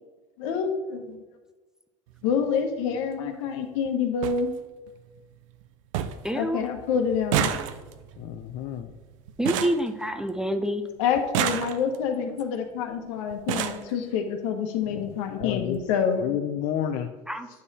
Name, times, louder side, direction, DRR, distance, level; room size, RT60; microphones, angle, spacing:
voice 1, 0.4-1.2 2.2-4.5 6.3-7.6 11.0-16.2, left 6 dB, 80° left, 5 dB, 1.3 m, -27 dB
sound 1, 2.1-2.3 3.5-3.6 3.8-3.9 4.2-4.4 4.9-5.3 5.6-5.7 5.9-6.3 6.6-10.6 11.1-12.1 12.9-13.0 13.3-13.9 14.8-14.9 15.3-15.5 15.7-15.9, right 10 dB, 85° right, 0.6 m, -30 dB
voice 2, 6.2-6.6 9.4-10.8 17.3-17.5, equal, 5° right, 8 dB, 0.6 m, -27 dB
voice 3, 8.2-8.9 14.9-15.1 15.4-15.8 16.2-17.1, left 10 dB, 55° left, 5 dB, 0.7 m, -30 dB
9.4 x 5.3 x 4.2 m, 1.3 s
supercardioid pair, 110°, 16 cm